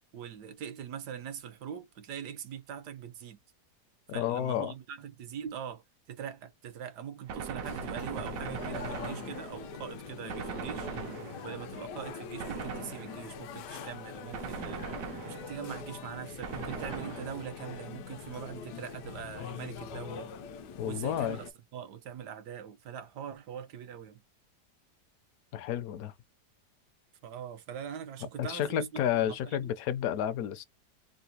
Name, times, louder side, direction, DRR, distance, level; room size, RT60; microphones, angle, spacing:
voice 1, 0.1-3.4 4.1-10.9 11.4-14.8 15.2-20.3 20.8-24.2 27.2-29.7, right 8 dB, 80° right, 1.4 m, -42 dB
voice 2, 4.1-4.7 20.8-21.4 25.5-26.1 28.4-30.6, left 10 dB, 70° left, 0.9 m, -31 dB
Gunshot gunfire, 7.3-9.8 10.3-11.7 12.4-13.4 14.3-15.7 16.4-17.7, right 6 dB, 65° right, 1.0 m, -40 dB
sound 1, 7.6-21.5, left 6 dB, 85° left, 1.3 m, -43 dB
3.9 x 2.2 x 2.7 m
omnidirectional pair, 1.8 m